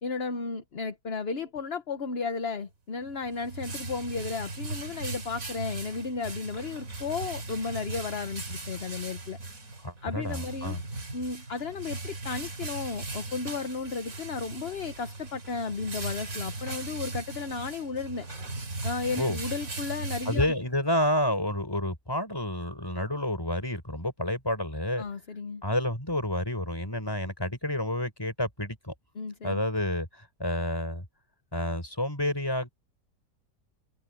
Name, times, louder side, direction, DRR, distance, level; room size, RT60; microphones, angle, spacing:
voice 1, 0.0-9.4 10.0-10.8 11.1-18.3 18.8-20.5 25.0-25.6 29.2-29.6, left 4 dB, 40° left, 1.2 m, -34 dB
sound 1, 3.0-20.9, right 2 dB, 50° right, 3.4 m, -38 dB
voice 2, 9.8-10.8 19.2-19.4 20.2-25.0 25.6-28.9 29.4-31.0 31.5-32.7, left 1 dB, 15° left, 5.1 m, -29 dB
omnidirectional pair, 1.9 m